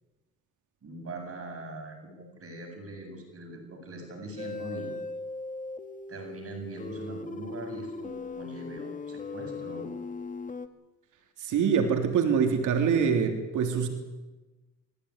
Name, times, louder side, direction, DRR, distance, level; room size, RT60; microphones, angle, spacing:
voice 1, 0.8-5.0 6.1-9.9, right 1 dB, 50° right, 4 dB, 7.7 m, -41 dB
sound 1, 4.4-10.7, left 3 dB, 25° left, 2.0 m, -38 dB
voice 2, 11.4-13.9, right 6 dB, 80° right, 5 dB, 3.4 m, -24 dB
26.0 x 15.0 x 9.8 m, 1.1 s
cardioid pair, 90°, 30 cm